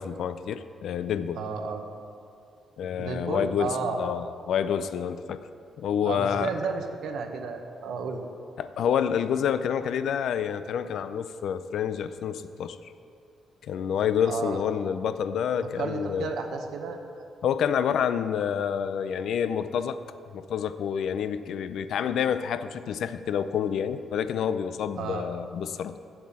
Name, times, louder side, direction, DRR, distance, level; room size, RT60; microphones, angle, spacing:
voice 1, 0.0-1.4 2.8-5.4 5.8-6.5 8.6-12.9 13.6-16.3 17.4-20.0 20.3-26.0, left 8 dB, 75° left, 12 dB, 0.5 m, -28 dB
voice 2, 1.3-1.9 3.0-4.0 6.0-8.2 14.2-14.6 15.8-17.2 25.0-25.2, right 5 dB, 80° right, 5 dB, 1.1 m, -32 dB
7.8 x 7.4 x 8.6 m, 2.5 s
cardioid pair, 105°, 0 cm